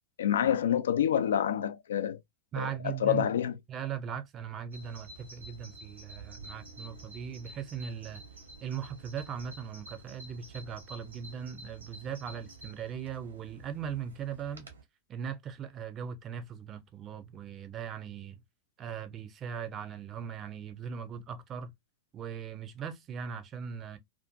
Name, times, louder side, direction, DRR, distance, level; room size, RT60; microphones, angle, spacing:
voice 1, 0.2-2.2 2.6-3.5, left 9 dB, 65° left, 0.3 m, -27 dB
voice 2, 2.5-3.3 3.7-8.2 8.6-14.7 15.1-18.4 18.8-21.7 22.1-24.0, right 8 dB, 30° right, 0.5 m, -39 dB
Bird vocalization bird call bird song, 4.7-14.8, right 2 dB, 75° right, 0.8 m, -50 dB
2.6 x 2.4 x 2.2 m
figure-of-eight pair, 90°, 0 cm